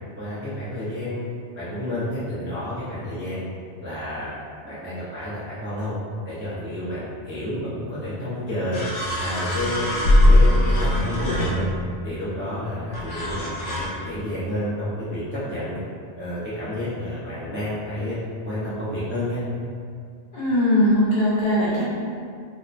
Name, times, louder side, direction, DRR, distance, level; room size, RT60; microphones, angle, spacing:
voice 1, 0.2-1.3 1.6-3.5 3.8-4.3 4.6-5.9 6.3-8.8 9.2-9.9 10.3-11.7 12.0-15.8 16.2-18.2 18.4-19.4, left 1 dB, 15° right, -12 dB, 0.4 m, -30 dB
sound 1, 8.1-8.2 8.7-12.0 12.9-13.9, left 1 dB, 85° left, 0.9 m, -20 dB
voice 2, 20.3-21.8, left 1 dB, 60° left, -9 dB, 1.0 m, -20 dB
2.8 x 2.1 x 2.4 m, 2.2 s
omnidirectional pair, 1.2 m